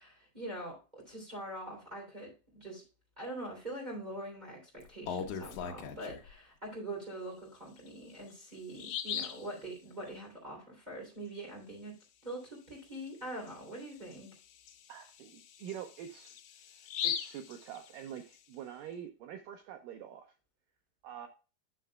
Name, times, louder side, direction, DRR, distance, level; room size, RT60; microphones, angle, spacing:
voice 1, 0.0-2.8 3.2-11.9 12.2-14.3, right 1 dB, 10° right, -3 dB, 2.4 m, -43 dB
Bird vocalization bird call bird song, 4.8-6.3 7.8-7.9 8.3-8.4 8.8-9.5 12.9-13.1 13.5-13.6 14.1-18.3, left 8 dB, 85° left, 1.7 m, -39 dB
voice 2, 14.9-16.4 17.0-20.3 21.0-21.3, right 9 dB, 90° right, 5 dB, 1.9 m, -45 dB
9.7 x 6.7 x 2.3 m, 0.32 s
omnidirectional pair, 4.8 m